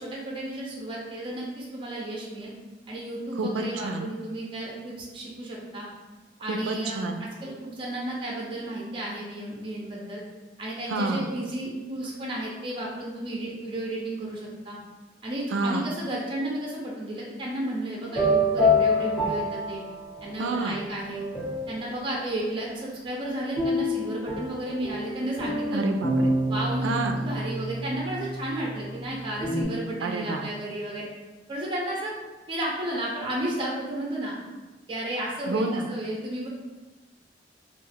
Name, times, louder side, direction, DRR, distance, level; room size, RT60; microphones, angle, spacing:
voice 1, 0.0-2.5 2.9-5.9 6.4-10.2 10.6-14.8 15.2-19.8 20.2-21.3 21.7-25.9 26.5-31.1 31.5-32.1 32.5-34.3 34.9-36.5, right 1 dB, 30° right, -3 dB, 0.4 m, -33 dB
voice 2, 3.4-4.1 6.5-7.2 10.9-11.3 15.5-15.8 20.4-20.8 25.7-26.4 26.8-27.2 30.0-30.5 35.5-35.9, right 2 dB, 90° right, 5 dB, 0.3 m, -29 dB
sound 1, 18.1-20.5 21.0-22.0 23.6-29.6, left 1 dB, 5° left, 0.7 m, -27 dB
2.3 x 2.3 x 3.2 m, 1.2 s
head